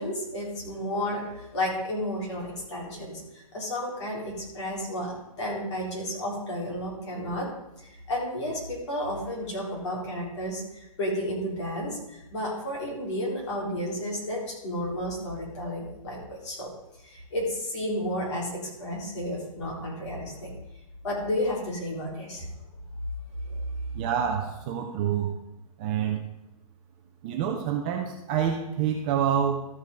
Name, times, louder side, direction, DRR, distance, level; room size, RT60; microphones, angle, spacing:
voice 1, 0.0-7.5 7.8-16.7 17.0-20.5 21.0-22.5 23.5-23.6, left 1 dB, 50° left, -2 dB, 4.1 m, -32 dB
voice 2, 23.9-25.3 25.8-26.2 27.2-29.7, right 8 dB, 15° right, 2 dB, 0.4 m, -27 dB
13.5 x 5.3 x 5.1 m, 0.91 s
hypercardioid pair, 165°, 19 cm